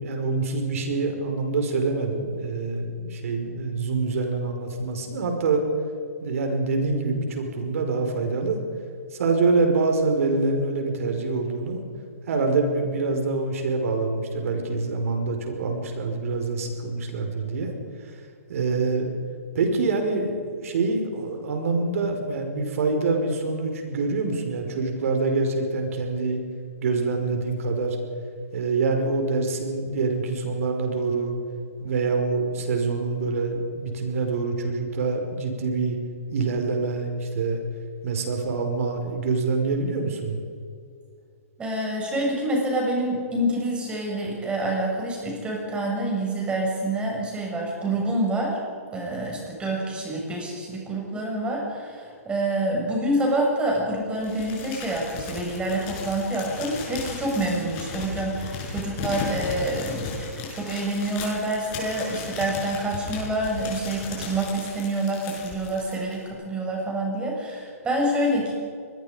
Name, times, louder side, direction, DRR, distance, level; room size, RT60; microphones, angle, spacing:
voice 1, 0.0-5.6 6.2-8.6 9.1-11.8 12.3-17.7 18.1-18.2 18.5-19.1 19.5-26.4 26.8-28.0 28.5-31.3 31.8-36.0 36.3-37.6 38.0-40.4, right 3 dB, 65° right, 4 dB, 5.2 m, -25 dB
voice 2, 41.6-48.6 48.9-68.5, right 1 dB, 10° right, -1 dB, 6.9 m, -27 dB
Crumpling crinkling, 54.2-66.3, left 5 dB, 35° left, 6.3 m, -36 dB
24.5 x 21.5 x 5.2 m, 2.3 s
hypercardioid pair, 145°, 8 cm